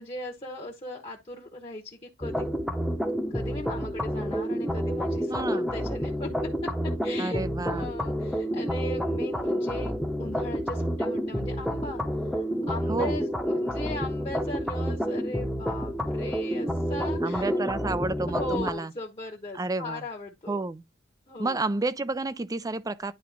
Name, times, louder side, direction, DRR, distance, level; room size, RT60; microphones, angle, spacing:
voice 1, 0.0-2.5 3.3-6.3 7.0-9.9 10.2-12.0 12.3-17.6 18.3-20.6 21.3-21.6, left 2 dB, 30° left, 1.2 m, -38 dB
sound 1, 2.2-18.7, equal, ahead, 0.9 m, -29 dB
voice 2, 5.3-5.7 7.2-7.9 12.9-13.2 17.2-18.9 19.5-20.0 20.5-20.8 21.4-23.1, right 3 dB, 20° right, 0.4 m, -30 dB
10.5 x 3.6 x 3.5 m
head